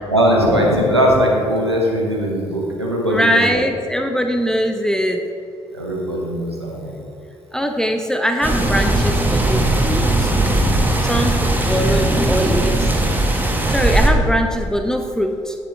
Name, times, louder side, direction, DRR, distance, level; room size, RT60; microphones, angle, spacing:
voice 1, 0.1-3.6 5.7-6.9, equal, 90° right, -2 dB, 1.3 m, -19 dB
voice 2, 3.0-5.2 7.5-10.3 11.0-12.9 13.7-15.6, equal, 5° left, 4 dB, 0.9 m, -21 dB
sound 1, 8.4-14.1, right 1 dB, 15° right, 1.7 m, -18 dB
16.0 x 8.3 x 3.3 m, 2.7 s
figure-of-eight pair, 45°, 13 cm